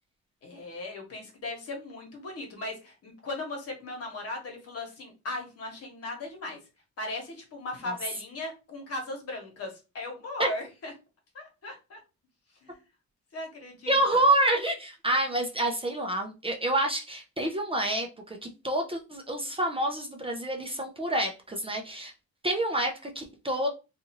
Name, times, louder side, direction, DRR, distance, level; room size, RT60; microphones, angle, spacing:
voice 1, 0.4-6.6 7.0-10.9 11.3-12.0 12.6-12.8 13.3-14.2, left 2 dB, 55° left, 2 dB, 1.2 m, -38 dB
voice 2, 13.9-22.1 22.4-23.7, right 1 dB, 20° right, 2 dB, 0.5 m, -28 dB
2.7 x 2.4 x 2.8 m, 0.29 s
cardioid pair, 90°, 30 cm